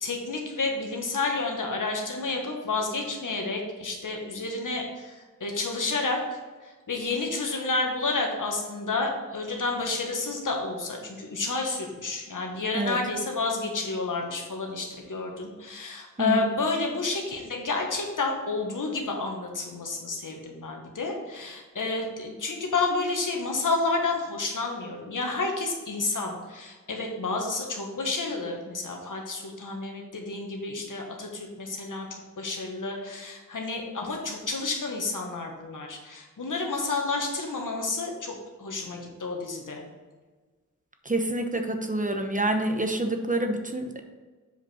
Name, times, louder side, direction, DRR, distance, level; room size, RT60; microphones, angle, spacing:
voice 1, 0.0-5.1 5.4-6.4 6.9-39.8, left 3 dB, 70° left, 1 dB, 1.6 m, -30 dB
voice 2, 16.2-16.5 41.1-44.0, right 1 dB, 25° right, 5 dB, 1.0 m, -27 dB
7.6 x 5.1 x 4.4 m, 1.4 s
cardioid pair, 50°, 33 cm